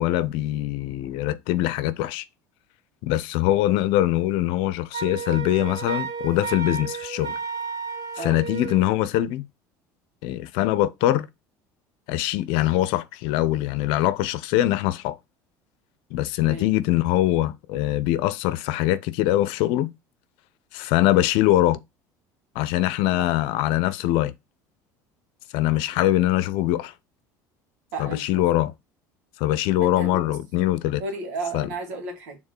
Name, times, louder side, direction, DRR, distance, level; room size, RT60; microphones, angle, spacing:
voice 1, 0.0-2.2 3.0-7.3 8.2-9.5 10.2-11.3 12.1-15.2 16.1-19.9 20.7-21.8 22.5-24.3 25.5-26.9 28.0-28.7 29.4-31.0 31.5-31.7, left 14 dB, 70° left, 0.7 m, -23 dB
Wind instrument woodwind instrument, 4.9-8.9, right 5 dB, 45° right, 3.2 m, -32 dB
voice 2, 27.9-28.4 29.8-30.4 31.0-32.4, right 2 dB, 80° right, 2.2 m, -33 dB
6.6 x 3.7 x 4.4 m
supercardioid pair, 85°, 9 cm